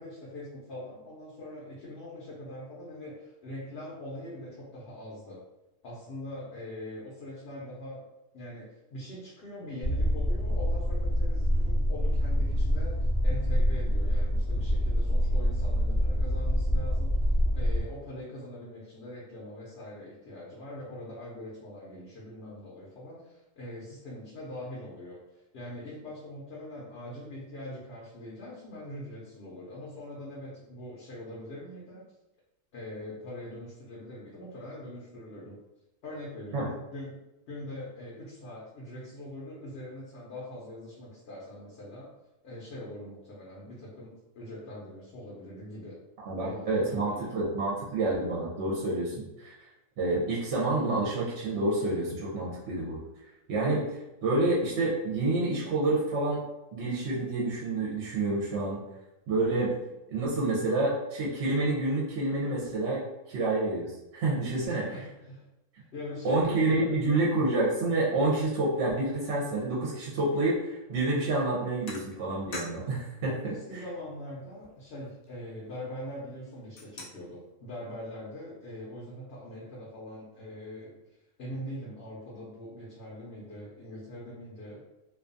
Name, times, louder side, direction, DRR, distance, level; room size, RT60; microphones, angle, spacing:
voice 1, 0.0-5.4 5.8-8.0 8.3-17.2 17.5-32.0 32.7-35.6 36.0-37.2 37.5-42.1 42.4-46.0 46.4-47.4 64.6-65.5 65.9-67.2 73.2-81.0 81.4-84.8, left 1 dB, 60° left, -5 dB, 0.8 m, -42 dB
sound 1, 9.8-17.8, equal, 15° right, 0.8 m, -26 dB
voice 2, 46.3-49.5 50.0-53.0 53.5-53.9 54.2-56.4 56.7-58.8 59.3-59.7 60.1-64.8 66.2-73.3, right 2 dB, 65° right, -5 dB, 0.8 m, -28 dB
sound 2, 71.0-71.2 71.9-73.0 73.4-73.5 74.0-74.1 74.4-76.1 76.5-77.4, left 2 dB, 85° left, 0.3 m, -45 dB
2.5 x 2.3 x 2.5 m, 0.95 s
omnidirectional pair, 1.4 m